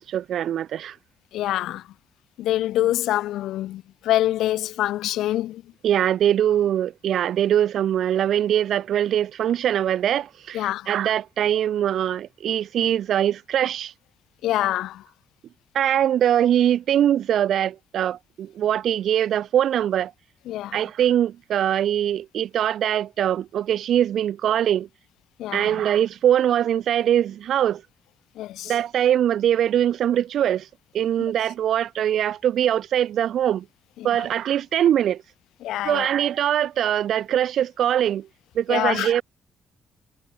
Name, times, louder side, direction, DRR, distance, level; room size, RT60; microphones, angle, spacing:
voice 1, 0.1-0.9 5.8-13.9 15.7-20.1 20.7-24.9 25.5-27.8 28.7-30.6 30.9-33.6 34.0-35.2 35.8-38.3 38.6-39.2, right 10 dB, 70° right, 4.0 m, -22 dB
voice 2, 1.3-1.8 2.4-5.6 10.5-10.9 14.4-15.0 20.5-20.8 25.4-25.8 28.4-28.8 34.0-34.3 35.6-36.1 38.7-39.1, left 14 dB, 85° left, 6.5 m, -25 dB
cardioid pair, 90°, 0 cm